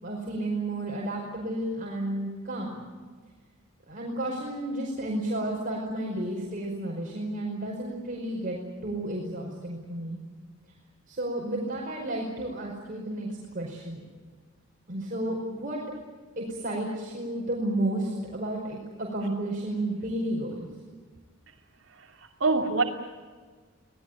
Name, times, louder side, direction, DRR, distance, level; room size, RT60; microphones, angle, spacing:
voice 1, 0.0-2.8 3.9-10.2 11.1-14.0 14.9-15.8 16.4-20.7, right 1 dB, 45° right, -2 dB, 5.2 m, -32 dB
voice 2, 21.8-22.8, right 3 dB, 70° right, -2 dB, 2.8 m, -27 dB
26.5 x 18.5 x 9.3 m, 1.5 s
head